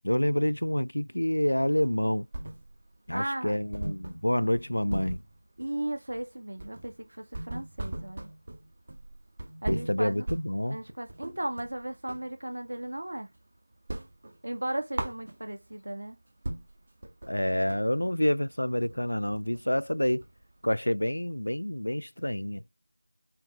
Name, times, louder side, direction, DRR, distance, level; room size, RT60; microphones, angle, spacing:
voice 1, 0.0-2.3 3.1-5.2 9.7-10.8 17.3-20.2 20.6-22.6, left 1 dB, 80° left, 0.3 m, -28 dB
sound 1, 1.8-3.0 3.3-3.4 3.7-12.3 12.7-13.5 13.7-15.7 16.2-16.3 16.4-20.6, right 1 dB, 45° right, 1.6 m, -39 dB
voice 2, 3.1-3.6 5.6-8.3 9.6-10.3 10.7-13.3 14.4-16.2, right 1 dB, 60° right, 1.9 m, -35 dB
7.2 x 4.7 x 3.1 m
figure-of-eight pair, 170°, 0 cm